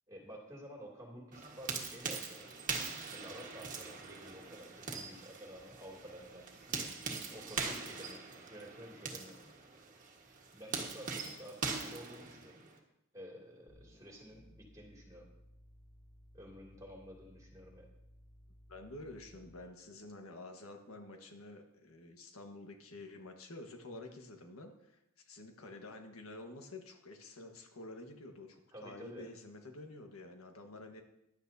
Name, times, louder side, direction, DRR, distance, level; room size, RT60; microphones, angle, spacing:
voice 1, 0.1-2.5 3.1-6.8 7.3-9.5 10.5-12.6 13.1-15.3 16.3-17.9 28.7-29.2, equal, 15° right, -2 dB, 2.7 m, -51 dB
sound 1, 1.3-12.8, right 4 dB, 40° right, 1.6 m, -42 dB
sound 2, 13.7-19.8, equal, 10° left, 1.3 m, -60 dB
voice 2, 18.7-25.0 25.3-31.0, left 2 dB, 85° left, 3 dB, 1.5 m, -49 dB
15.5 x 11.5 x 2.8 m, 0.84 s
head